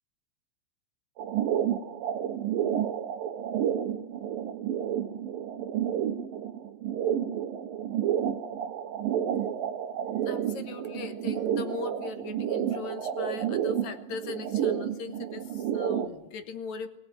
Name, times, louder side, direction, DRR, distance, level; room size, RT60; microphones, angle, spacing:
sound 1, 1.2-16.1, right 9 dB, 75° right, 3.0 m, -30 dB
voice 1, 10.2-16.9, left 5 dB, 60° left, 9 dB, 2.3 m, -39 dB
22.0 x 18.0 x 9.2 m, 0.82 s
omnidirectional pair, 4.1 m